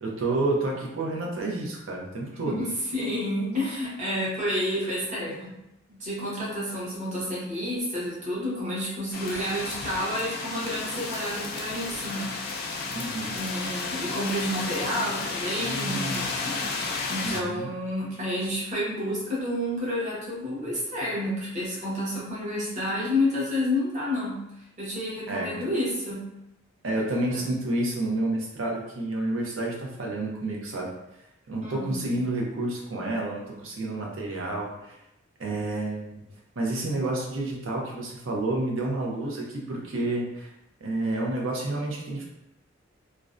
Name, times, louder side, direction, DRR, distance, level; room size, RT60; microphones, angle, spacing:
voice 1, 0.0-2.6 12.9-13.4 15.5-16.2 17.2-17.7 25.3-25.6 26.8-30.9 31.5-35.0 35.4-36.2 36.6-40.5 40.8-42.2, right 2 dB, 70° right, -2 dB, 0.6 m, -29 dB
voice 2, 2.4-5.5 5.9-12.3 13.3-16.6 17.1-24.4 24.8-26.2 27.3-27.4 31.6-32.2, left 1 dB, 35° right, -7 dB, 0.8 m, -30 dB
sound 1, 9.1-17.4, left 3 dB, 50° left, 0.3 m, -32 dB
2.5 x 2.1 x 2.4 m, 0.87 s
head